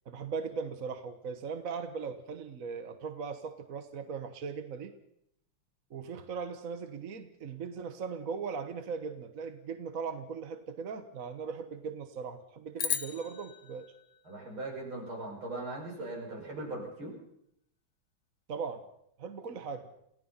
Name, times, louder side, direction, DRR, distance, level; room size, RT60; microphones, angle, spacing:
voice 1, 0.0-4.9 5.9-13.9 18.5-18.8 19.2-19.9, right 5 dB, 45° right, 8 dB, 1.4 m, -39 dB
sound 1, 12.8-15.2, left 7 dB, 50° left, 1.0 m, -38 dB
voice 2, 14.2-17.2, right 2 dB, 70° right, -1 dB, 6.7 m, -39 dB
29.5 x 16.0 x 5.7 m, 0.75 s
omnidirectional pair, 2.3 m